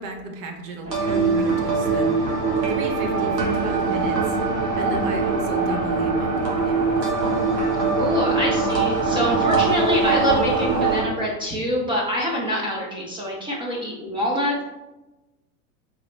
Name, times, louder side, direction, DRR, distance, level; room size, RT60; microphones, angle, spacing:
voice 1, 0.0-2.3 2.7-4.4 4.8-7.0, right 3 dB, 55° right, 3 dB, 0.9 m, -34 dB
sound 1, 0.8-11.0, right 4 dB, 90° right, 1.4 m, -22 dB
voice 2, 8.0-14.6, left 1 dB, 10° right, -4 dB, 0.5 m, -25 dB
4.1 x 2.9 x 3.2 m, 1.0 s
hypercardioid pair, 110°, 49 cm